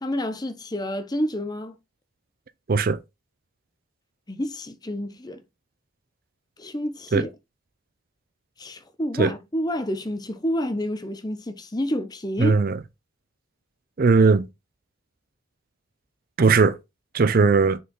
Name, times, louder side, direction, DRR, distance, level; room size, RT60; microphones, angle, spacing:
voice 1, 0.0-1.8 4.3-5.4 6.6-7.3 8.6-12.5, equal, 20° left, 0.7 m, -29 dB
voice 2, 2.7-3.0 7.1-7.3 9.2-9.3 12.4-12.8 14.0-14.5 16.4-16.8 17.1-17.8, right 4 dB, 45° right, 0.4 m, -18 dB
6.3 x 4.6 x 3.9 m
head